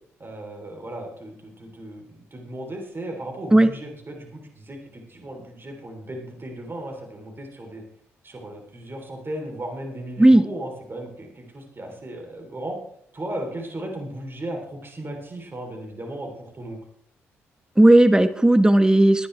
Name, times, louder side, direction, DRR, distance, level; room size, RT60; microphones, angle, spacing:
voice 1, 0.2-7.8 8.2-12.8 13.1-16.8, right 1 dB, 35° right, 2 dB, 3.4 m, -36 dB
voice 2, 17.8-19.3, right 1 dB, 10° right, 11 dB, 1.3 m, -14 dB
20.0 x 10.0 x 3.4 m, 0.66 s
hypercardioid pair, 40°, 7 cm